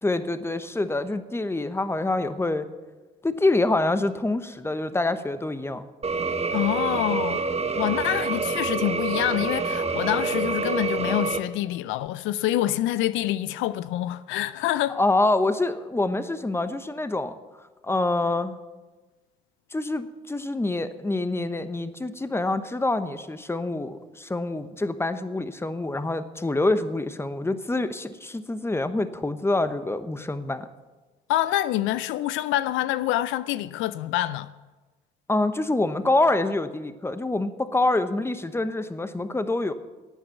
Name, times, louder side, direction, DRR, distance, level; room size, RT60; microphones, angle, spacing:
voice 1, 0.0-2.7 3.2-5.8 14.9-17.3 17.8-18.5 19.7-30.7 35.3-39.7, left 2 dB, 10° left, 1.0 m, -26 dB
sound 1, 6.0-11.4, right 4 dB, 30° right, 1.2 m, -27 dB
voice 2, 6.5-7.4 7.8-15.0 31.3-34.5, left 14 dB, 75° left, 0.5 m, -26 dB
11.5 x 8.8 x 7.1 m
supercardioid pair, 65°, 20 cm